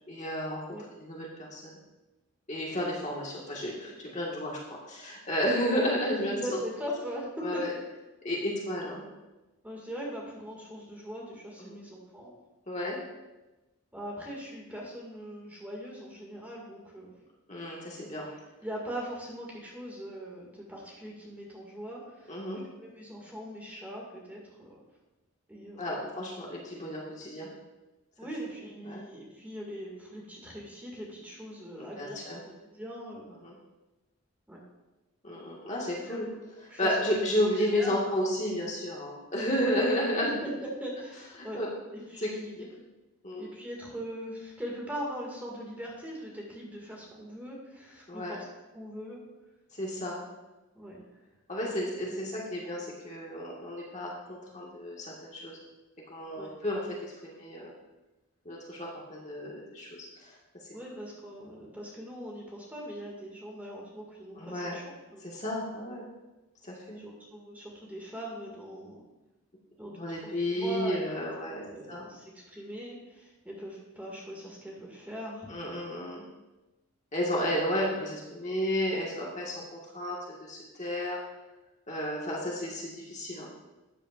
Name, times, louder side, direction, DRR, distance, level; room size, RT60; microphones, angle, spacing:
voice 1, 0.1-0.6 1.0-1.8 2.5-4.6 4.9-6.4 7.4-7.7 8.2-9.0 11.6-11.8 12.7-13.0 17.5-18.3 22.3-22.6 25.8-27.5 28.8-29.0 31.8-32.4 33.4-33.5 35.2-36.3 36.6-40.3 41.4-41.7 42.2-42.3 43.2-43.5 48.1-48.4 49.7-50.2 51.5-55.6 56.1-57.7 58.4-60.3 64.4-64.8 65.2-66.0 66.6-67.0 69.9-71.6 71.9-72.1 75.5-76.2 77.1-79.5 79.9-81.2 81.9-83.5, equal, 35° left, -4 dB, 1.7 m, -32 dB
voice 2, 6.2-7.6 9.6-12.3 13.9-17.1 18.0-22.4 22.8-24.8 25.5-25.9 28.2-32.2 32.7-33.3 34.5-34.6 35.8-36.4 36.7-37.2 37.6-38.1 39.6-39.8 40.2-41.6 41.9-42.7 43.4-48.4 48.7-49.2 50.7-51.1 51.6-51.9 56.3-56.5 60.7-65.3 67.0-69.0 69.8-71.1 71.5-75.8, equal, 10° right, -3 dB, 2.0 m, -41 dB
13.0 x 9.0 x 2.5 m, 1.1 s
head